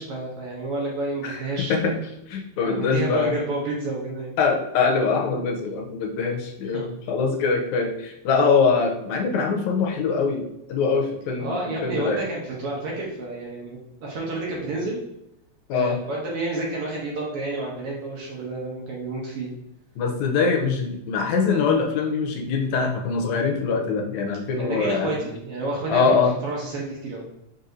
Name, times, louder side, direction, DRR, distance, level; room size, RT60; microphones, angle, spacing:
voice 1, 0.0-2.0 2.6-4.3 6.7-6.9 11.4-15.0 15.7-19.5 24.6-27.3, right 2 dB, 65° right, -3 dB, 1.6 m, -30 dB
voice 2, 2.3-3.4 4.4-10.4 10.7-11.6 11.8-12.2 15.7-16.0 20.0-25.1 25.9-26.3, left 5 dB, 85° left, 2 dB, 2.0 m, -23 dB
4.7 x 4.0 x 2.6 m, 0.82 s
omnidirectional pair, 3.3 m